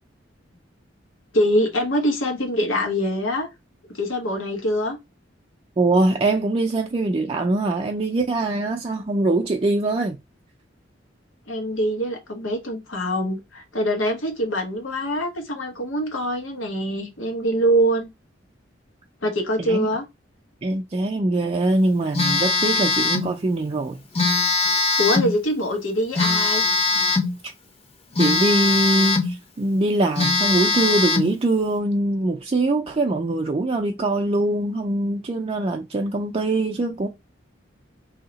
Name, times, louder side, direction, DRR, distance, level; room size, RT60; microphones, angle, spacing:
voice 1, 1.3-3.5 3.9-5.0 11.5-18.1 19.2-20.0 25.0-26.6, equal, 90° left, 1.2 m, -24 dB
voice 2, 5.8-10.2 19.6-19.9 20.6-24.0 27.4-27.5 28.2-37.1, right 2 dB, 30° right, 0.4 m, -22 dB
Telephone, 22.1-23.3 24.1-25.3 26.2-27.3 28.2-29.3 29.8-29.9 30.2-31.3, left 3 dB, 30° left, 0.7 m, -21 dB
3.2 x 2.8 x 3.9 m
head